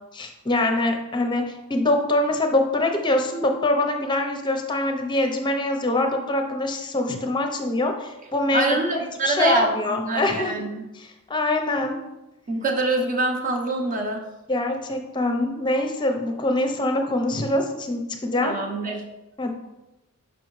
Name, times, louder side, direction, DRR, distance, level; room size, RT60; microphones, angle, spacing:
voice 1, 0.1-10.5 10.9-12.0 14.5-18.6 19.4-19.5, left 2 dB, 20° left, 4 dB, 0.6 m, -24 dB
voice 2, 8.5-10.9 12.5-14.2 18.4-19.0, right 2 dB, 35° right, 2 dB, 0.8 m, -25 dB
6.1 x 5.2 x 3.1 m, 0.98 s
head